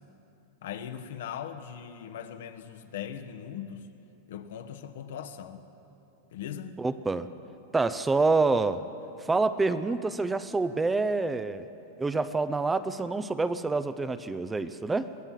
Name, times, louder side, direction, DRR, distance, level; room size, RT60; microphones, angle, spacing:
voice 1, 0.6-3.9 4.3-5.6 6.3-6.8, left 9 dB, 75° left, 8 dB, 1.4 m, -39 dB
voice 2, 6.8-7.3 7.7-8.8 9.3-11.6 12.0-15.1, right 3 dB, 10° right, 13 dB, 0.6 m, -27 dB
22.5 x 15.5 x 7.5 m, 2.9 s
supercardioid pair, 140°, 0 cm